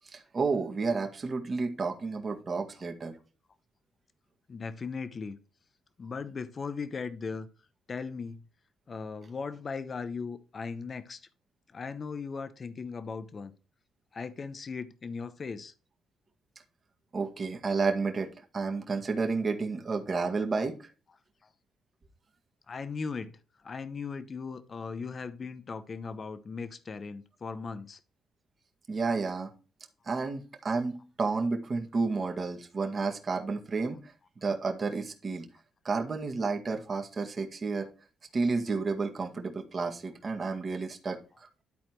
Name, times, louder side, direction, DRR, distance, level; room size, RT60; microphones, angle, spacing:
voice 1, 0.1-3.2 17.1-20.9 28.9-29.5 30.1-34.1 34.4-35.5 35.8-37.9 38.3-41.2, right 4 dB, 35° right, 1.8 m, -31 dB
voice 2, 4.5-5.4 6.0-7.5 7.9-8.4 8.9-11.2 11.7-13.5 14.1-15.7 22.7-23.4 23.6-28.0 32.1-32.2, left 5 dB, 40° left, 0.9 m, -38 dB
11.5 x 4.2 x 4.6 m
cardioid pair, 90°, 0 cm